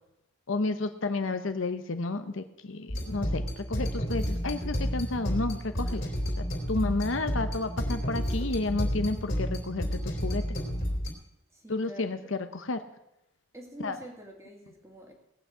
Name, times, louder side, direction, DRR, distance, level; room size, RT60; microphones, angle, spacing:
voice 1, 0.5-6.1 6.4-10.4 11.7-12.8 13.8-14.0, left 3 dB, 60° left, 9 dB, 0.8 m, -31 dB
sound 1, 2.9-11.1, equal, 45° left, 3.3 m, -31 dB
voice 2, 11.5-12.3 13.5-15.1, equal, 15° right, 1 dB, 2.2 m, -46 dB
18.0 x 6.4 x 8.1 m, 0.89 s
head